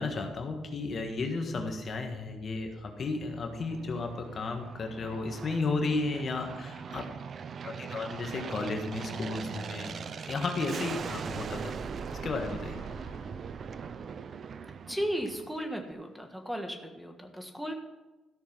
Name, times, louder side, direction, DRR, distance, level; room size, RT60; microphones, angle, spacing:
voice 1, 0.0-7.0 7.6-11.7 12.2-12.8, left 3 dB, 45° left, 4 dB, 1.5 m, -33 dB
Aircraft, 2.9-15.6, right 6 dB, 50° right, 0.5 m, -41 dB
sound 1, 5.2-16.6, right 2 dB, 80° right, 2.3 m, -56 dB
voice 2, 14.9-17.8, equal, 5° right, 4 dB, 1.5 m, -35 dB
13.5 x 6.4 x 5.9 m, 1.1 s
cardioid pair, 90°, 0 cm